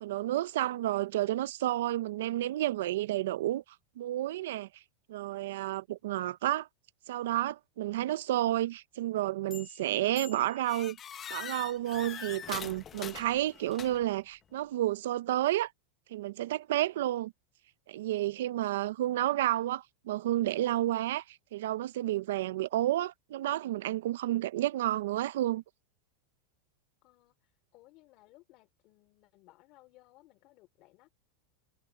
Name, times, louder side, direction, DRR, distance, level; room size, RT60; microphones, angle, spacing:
voice 1, 0.0-3.6 4.0-4.7 5.1-6.7 7.1-11.0 11.3-15.7 16.1-17.3 17.9-25.6, right 14 dB, 70° right, 0.5 m, -31 dB
sound 1, 9.5-9.8 10.2-14.2, left 8 dB, 20° left, 0.8 m, -43 dB
voice 2, 27.0-31.1, left 19 dB, 35° left, 3.3 m, -61 dB
supercardioid pair, 170°, 0 cm